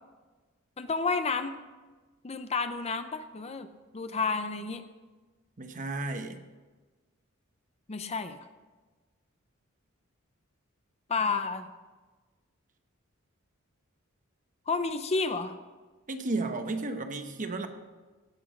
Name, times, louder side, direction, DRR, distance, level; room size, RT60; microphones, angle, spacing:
voice 1, 0.8-1.5 2.2-4.8 7.9-8.4 11.1-11.7 14.7-15.5, left 4 dB, 30° left, 10 dB, 0.6 m, -31 dB
voice 2, 5.6-6.4 16.1-17.7, right 2 dB, 40° right, 7 dB, 1.0 m, -33 dB
17.0 x 6.1 x 6.3 m, 1.3 s
head